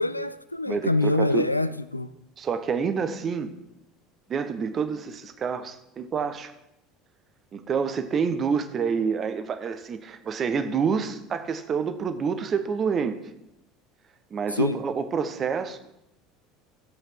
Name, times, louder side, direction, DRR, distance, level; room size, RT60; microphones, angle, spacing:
voice 1, 0.0-2.1 14.5-14.8, left 2 dB, 90° left, 15 dB, 0.4 m, -25 dB
voice 2, 0.7-1.5 2.4-3.5 4.3-6.5 7.5-13.2 14.3-15.8, right 6 dB, 35° right, 11 dB, 1.0 m, -28 dB
14.0 x 7.9 x 4.6 m, 0.85 s
figure-of-eight pair, 70°, 0 cm